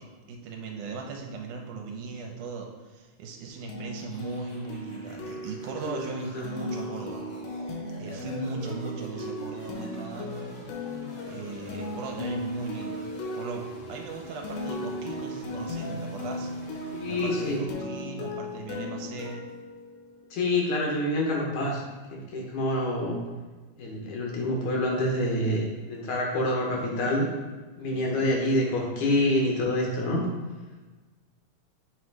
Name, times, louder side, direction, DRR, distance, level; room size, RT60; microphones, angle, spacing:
voice 1, 0.0-7.3 7.6-10.6 11.3-13.1 13.4-19.4 27.9-28.3, right 4 dB, 80° right, 1 dB, 2.1 m, -38 dB
sound 1, 3.7-20.4, left 1 dB, 90° left, 2.4 m, -37 dB
sound 2, 4.0-17.6, left 1 dB, 50° left, 1.5 m, -45 dB
voice 2, 16.9-17.6 20.3-21.8 22.1-23.2 23.8-27.3 27.8-30.2, left 1 dB, 70° left, -1 dB, 2.4 m, -27 dB
7.7 x 3.1 x 4.7 m, 1.3 s
omnidirectional pair, 3.8 m